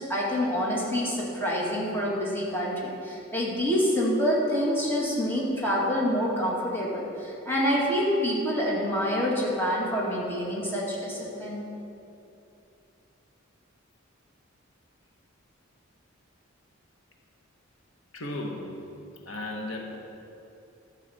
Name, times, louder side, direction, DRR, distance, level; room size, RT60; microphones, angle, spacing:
voice 1, 0.0-11.6, equal, 10° left, -5 dB, 2.0 m, -27 dB
voice 2, 18.1-18.9 19.2-20.0, left 1 dB, 80° left, 1 dB, 1.1 m, -35 dB
11.5 x 5.0 x 7.7 m, 2.8 s
head